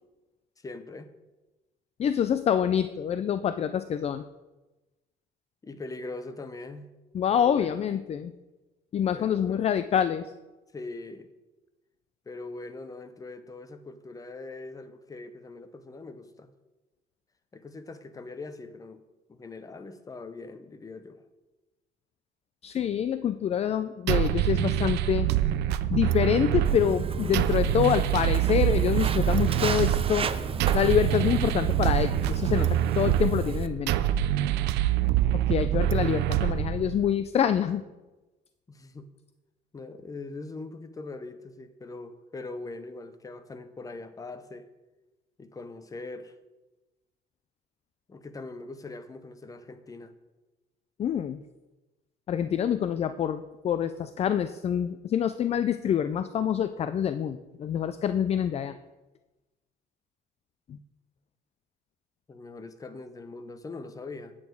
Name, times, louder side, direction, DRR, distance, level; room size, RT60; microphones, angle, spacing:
voice 1, 0.6-1.1 5.6-6.9 7.3-7.8 9.1-9.6 10.7-11.3 12.3-16.5 17.5-19.0 19.3-21.2 38.7-39.1 39.7-44.7 45.4-46.3 48.1-50.1 62.3-64.4, left 3 dB, 20° left, 0.8 m, -41 dB
voice 2, 2.0-4.2 7.1-8.3 8.9-10.3 22.6-25.3 25.9-30.3 30.7-34.0 35.3-37.8 51.0-51.4 52.3-58.7 60.7-60.8, left 9 dB, 40° left, 0.4 m, -26 dB
sound 1, 24.1-37.1, right 12 dB, 80° right, 0.5 m, -26 dB
Walk footsteps, 26.6-33.7, right 6 dB, 35° right, 0.6 m, -33 dB
8.9 x 8.5 x 4.7 m
cardioid pair, 110°, 17 cm